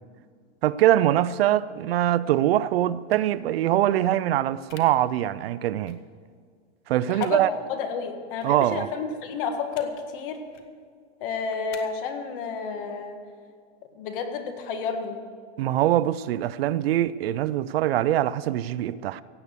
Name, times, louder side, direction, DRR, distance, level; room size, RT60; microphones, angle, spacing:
voice 1, 0.6-6.0 6.9-7.5 8.4-8.9 15.6-19.2, right 13 dB, 60° right, 0.4 m, -23 dB
sound 1, 3.1-3.3 4.7-4.8 5.9-6.0 7.2-7.3 8.4-8.5 9.7-9.9 10.4-10.7 11.7-11.8, left 9 dB, 90° left, 1.5 m, -47 dB
voice 2, 7.1-7.4 7.7-10.4 11.2-13.2 14.0-15.1, left 5 dB, 50° left, 1.6 m, -30 dB
16.5 x 8.2 x 6.7 m
supercardioid pair, 160°, 35 cm